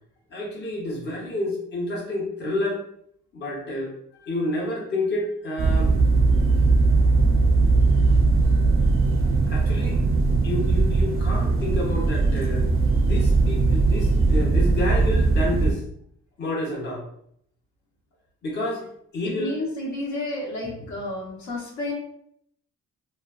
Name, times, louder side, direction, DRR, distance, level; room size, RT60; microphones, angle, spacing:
voice 1, 0.3-2.8 3.3-3.9 4.3-5.9 9.5-10.0 10.4-12.7 13.0-15.8 16.4-17.1 18.4-18.9 19.1-19.6, left 1 dB, 35° left, -3 dB, 0.8 m, -29 dB
sound 1, 5.6-15.7, right 3 dB, 45° right, 0.5 m, -20 dB
voice 2, 19.2-21.9, left 1 dB, 70° left, -3 dB, 1.1 m, -31 dB
3.1 x 2.3 x 2.3 m, 0.71 s
cardioid pair, 90°, 30 cm